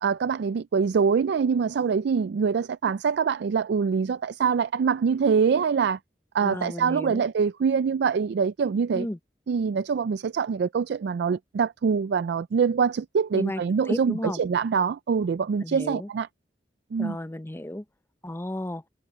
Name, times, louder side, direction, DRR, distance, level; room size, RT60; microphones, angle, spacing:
voice 1, 0.0-6.0 6.3-9.1 9.5-16.3 16.9-17.2, right 6 dB, 70° right, 0.4 m, -24 dB
voice 2, 6.4-7.2 8.9-9.2 13.3-13.6 13.9-14.4 15.6-16.1 17.0-17.8 18.2-18.8, left 1 dB, 15° left, 0.7 m, -33 dB
head